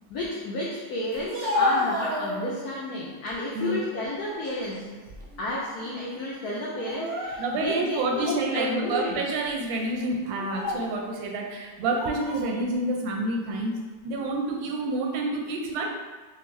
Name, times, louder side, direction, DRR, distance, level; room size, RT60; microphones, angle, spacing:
voice 1, 0.1-5.0 5.4-9.2, left 1 dB, 70° left, -5 dB, 1.0 m, -31 dB
Speech, 1.1-2.8 3.3-3.8 4.3-5.5 5.8-6.0 6.8-7.7 8.3-8.4 9.2-9.5 10.3-11.0 11.8-12.5, left 2 dB, 60° right, 0.6 m, -31 dB
voice 2, 7.4-13.7 14.0-15.9, right 2 dB, 90° right, 1 dB, 1.4 m, -28 dB
4.3 x 2.2 x 3.1 m, 1.3 s
omnidirectional pair, 2.1 m